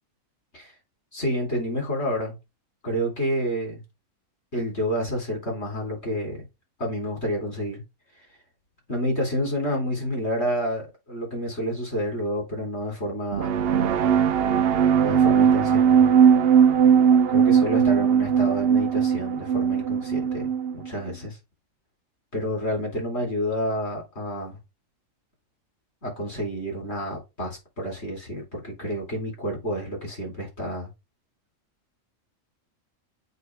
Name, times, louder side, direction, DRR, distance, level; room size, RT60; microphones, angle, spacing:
voice 1, 1.1-2.4 2.8-3.8 4.5-6.4 6.8-7.8 8.9-13.6 15.0-16.1 17.3-21.4 22.3-24.6 26.0-30.9, equal, 55° left, 4.1 m, -29 dB
sound 1, 13.3-20.9, right 7 dB, 60° right, 0.7 m, -19 dB
8.3 x 3.1 x 4.7 m
omnidirectional pair, 1.4 m